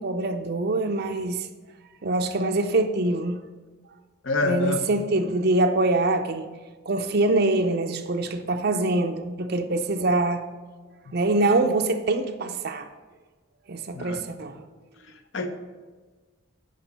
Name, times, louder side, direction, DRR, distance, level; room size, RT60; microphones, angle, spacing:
voice 1, 0.0-1.5 2.0-3.4 4.4-6.5 6.9-10.4 11.1-12.9 13.7-14.6, right 2 dB, 50° right, 6 dB, 0.5 m, -24 dB
voice 2, 4.2-4.8 13.9-14.3 15.3-15.5, left 2 dB, 60° left, 7 dB, 0.8 m, -26 dB
10.5 x 4.8 x 6.7 m, 1.4 s
head